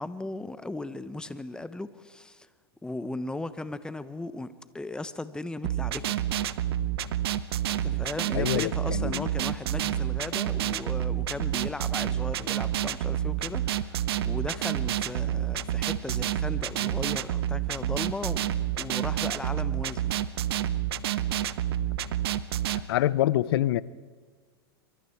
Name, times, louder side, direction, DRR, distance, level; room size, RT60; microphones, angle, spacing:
voice 1, 0.0-2.5 2.8-6.2 7.7-20.2, left 2 dB, 5° left, 13 dB, 1.0 m, -37 dB
sound 1, 5.6-22.8, right 11 dB, 70° right, 0.9 m, -29 dB
voice 2, 8.3-9.3 22.9-23.8, left 14 dB, 70° left, 20 dB, 0.7 m, -26 dB
25.0 x 24.0 x 4.6 m, 1.5 s
hypercardioid pair, 115°, 13 cm